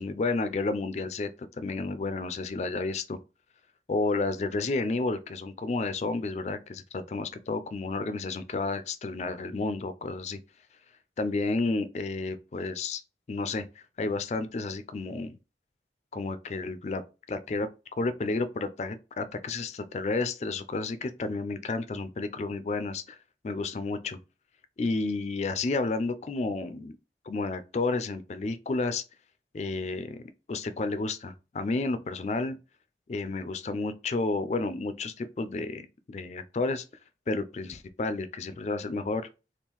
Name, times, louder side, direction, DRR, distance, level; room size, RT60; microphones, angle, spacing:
voice 1, 0.0-3.2 3.9-10.4 11.2-13.0 13.3-15.4 16.1-17.0 17.3-23.2 23.4-24.2 24.8-26.9 27.3-29.0 29.5-32.6 33.1-36.8 37.3-39.3, left 3 dB, 40° left, 0.3 m, -31 dB
3.6 x 2.3 x 2.9 m
head